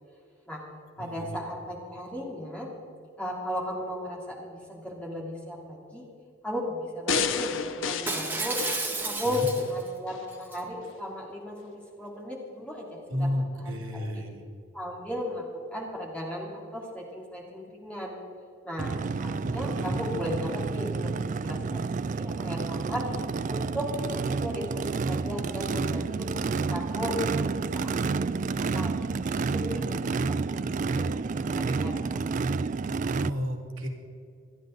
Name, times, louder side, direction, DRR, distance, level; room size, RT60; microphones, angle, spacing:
voice 1, 1.0-2.7 3.2-6.1 6.4-8.6 9.0-14.2 14.7-18.2 18.6-21.8 22.1-23.0 23.5-32.3, left 1 dB, 5° left, -4 dB, 3.2 m, -36 dB
sound 1, 7.1-9.6 10.1-10.2, left 5 dB, 65° left, 0.8 m, -31 dB
Shatter, 8.1-9.9 10.3-10.6, right 3 dB, 10° right, 1.4 m, -32 dB
voice 2, 13.1-14.4 19.4-20.0 33.2-33.9, equal, 75° right, 1 dB, 2.4 m, -32 dB
Race car auto racing / Idling / Accelerating revving vroom, 18.8-33.3, right 4 dB, 35° right, 0.3 m, -30 dB
27.5 x 11.0 x 3.9 m, 2.4 s
head